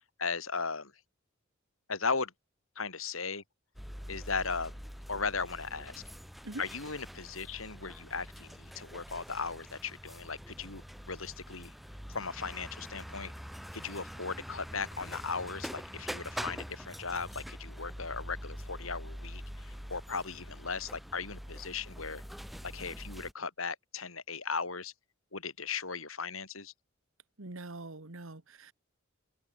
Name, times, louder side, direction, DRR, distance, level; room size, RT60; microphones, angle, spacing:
voice 1, 0.2-0.9 1.9-2.3 2.8-3.4 4.1-4.7 5.1-6.0 6.6-11.7 12.1-13.3 13.7-22.2 22.6-24.9 25.3-26.7, left 4 dB, 90° left, 4.7 m, -37 dB
sound 1, 3.8-23.3, equal, ahead, 4.4 m, -45 dB
voice 2, 27.4-28.7, right 2 dB, 75° right, 1.8 m, -43 dB
head